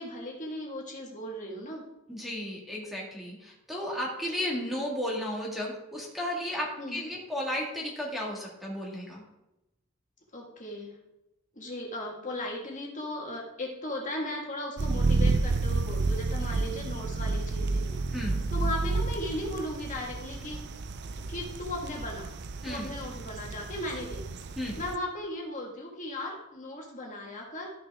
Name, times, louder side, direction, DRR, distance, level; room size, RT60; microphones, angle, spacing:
voice 1, 0.0-1.8 6.8-7.1 10.3-11.0 11.5-18.0 18.5-20.6 21.3-22.3 22.6-27.7, left 1 dB, 35° left, -1 dB, 2.0 m, -37 dB
voice 2, 2.1-9.2 18.1-18.4 22.6-22.9 24.6-24.8, left 1 dB, ahead, -3 dB, 1.9 m, -34 dB
sound 1, 14.8-25.0, right 3 dB, 55° right, 0.6 m, -30 dB
13.0 x 6.2 x 3.7 m, 0.89 s
head